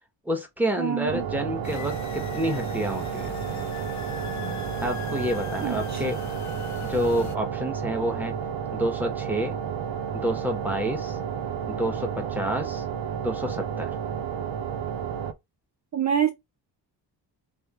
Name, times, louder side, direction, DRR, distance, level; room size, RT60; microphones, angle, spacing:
voice 1, 0.2-3.4 4.8-6.2 6.8-8.3 8.7-9.6 10.1-11.2 11.7-12.8 13.2-13.9, equal, 5° right, 1.4 m, -29 dB
voice 2, 0.8-1.2 5.6-6.0 15.9-16.3, right 8 dB, 40° right, 0.6 m, -26 dB
sound 1, 1.1-15.3, right 7 dB, 85° right, 0.8 m, -31 dB
sound 2, 1.6-7.4, left 8 dB, 40° left, 0.7 m, -40 dB
3.5 x 3.2 x 4.4 m
wide cardioid pair, 125°, 43 cm